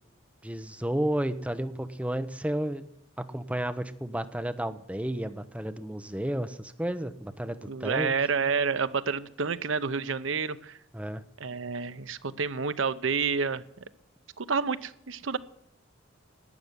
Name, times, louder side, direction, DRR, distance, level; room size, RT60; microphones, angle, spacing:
voice 1, 0.4-2.8 3.2-8.1 10.9-11.2, right 1 dB, 5° right, 9 dB, 0.8 m, -32 dB
voice 2, 7.7-10.8 11.4-13.6 14.4-15.4, right 5 dB, 70° right, 13 dB, 0.8 m, -29 dB
12.0 x 8.9 x 9.6 m, 0.77 s
head